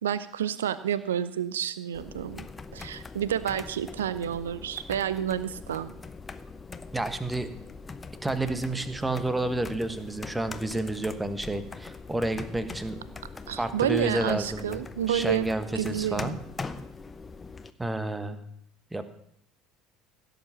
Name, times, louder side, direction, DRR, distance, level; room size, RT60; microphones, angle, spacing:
voice 1, 0.0-2.5 2.7-5.9 13.5-15.5 15.8-16.4, right 9 dB, 70° right, 15 dB, 0.5 m, -29 dB
sound 1, 1.9-17.7, left 4 dB, 20° left, 0.8 m, -42 dB
voice 2, 6.9-7.5 8.2-13.0 13.6-14.8 15.1-16.4 17.8-18.4 18.9-19.0, right 2 dB, 10° right, 10 dB, 1.3 m, -30 dB
16.5 x 8.0 x 5.8 m, 0.72 s
figure-of-eight pair, 65°, 0 cm